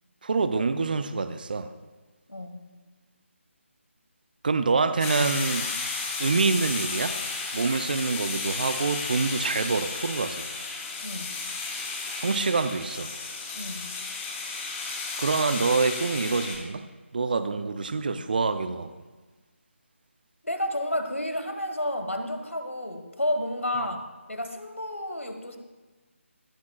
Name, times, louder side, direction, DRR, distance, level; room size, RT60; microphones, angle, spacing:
voice 1, 0.2-1.7 4.4-5.7 6.2-7.2 7.5-10.5 12.2-13.1 15.2-16.8 17.1-18.9 23.8-23.9, right 4 dB, 40° right, 11 dB, 0.5 m, -26 dB
voice 2, 2.3-2.7 11.0-11.4 13.5-14.0 20.4-24.0 24.3-25.6, left 1 dB, 85° left, 6 dB, 1.4 m, -31 dB
sound 1, 5.0-16.6, left 4 dB, 10° left, 0.9 m, -33 dB
16.0 x 9.4 x 2.3 m, 1.3 s
figure-of-eight pair, 155°, 7 cm